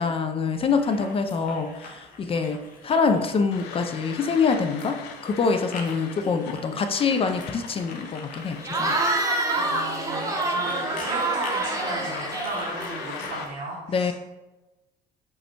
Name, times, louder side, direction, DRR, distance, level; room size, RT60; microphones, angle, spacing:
voice 1, 0.0-9.0 13.9-14.1, left 5 dB, 35° left, 7 dB, 0.4 m, -25 dB
sound 1, 0.7-13.5, left 3 dB, 55° left, 0.8 m, -44 dB
sound 2, 3.5-13.4, left 6 dB, 90° left, 0.6 m, -40 dB
Cheering / Crowd, 8.6-13.2, right 2 dB, 20° right, 0.7 m, -27 dB
voice 2, 9.5-14.1, right 2 dB, 70° right, -5 dB, 0.9 m, -35 dB
5.2 x 2.2 x 4.4 m, 1.1 s
cardioid pair, 110°, 17 cm